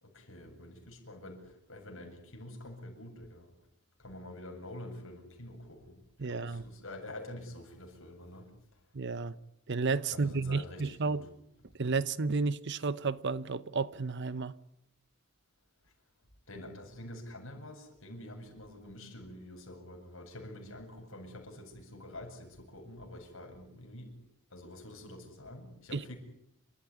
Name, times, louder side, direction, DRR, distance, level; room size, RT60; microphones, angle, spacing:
voice 1, 0.0-3.5 4.0-6.0 6.3-8.5 10.1-11.2 16.5-24.1 24.5-26.2, left 1 dB, 60° left, 7.6 m, -47 dB
voice 2, 6.2-6.6 8.9-9.3 9.7-11.2 11.8-14.5 25.9-26.1, right 4 dB, 50° right, 0.8 m, -32 dB
29.5 x 14.5 x 9.8 m
head